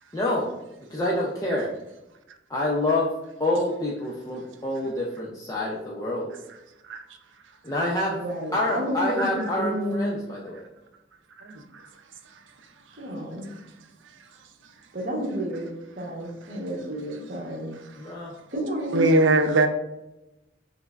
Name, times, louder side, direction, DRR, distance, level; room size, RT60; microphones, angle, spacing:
voice 1, 0.1-0.5 0.9-1.7 2.5-3.1 3.4-6.3 7.6-8.2 8.5-10.6 18.0-18.3, left 1 dB, 20° left, 0.4 m, -27 dB
voice 2, 8.2-10.1 13.0-13.5 14.9-17.7 18.5-19.1, equal, 50° right, 0.8 m, -31 dB
voice 3, 11.4-11.9 16.5-16.6 18.9-19.7, right 2 dB, 80° right, 0.4 m, -22 dB
5.6 x 2.0 x 2.3 m
head